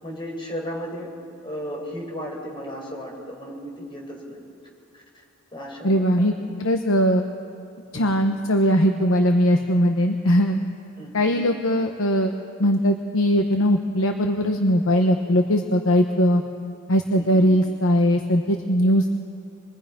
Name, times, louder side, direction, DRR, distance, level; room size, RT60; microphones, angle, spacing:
voice 1, 0.0-1.1 1.4-4.4 4.9-5.0 5.5-6.3 7.9-8.2 11.0-11.3 17.2-17.4, equal, 25° left, -1 dB, 4.4 m, -35 dB
voice 2, 5.8-6.3 6.6-7.3 7.9-10.6 11.1-12.3 12.6-16.4 16.9-19.2, equal, 90° left, 5 dB, 1.0 m, -20 dB
26.0 x 21.5 x 5.3 m, 2.8 s
head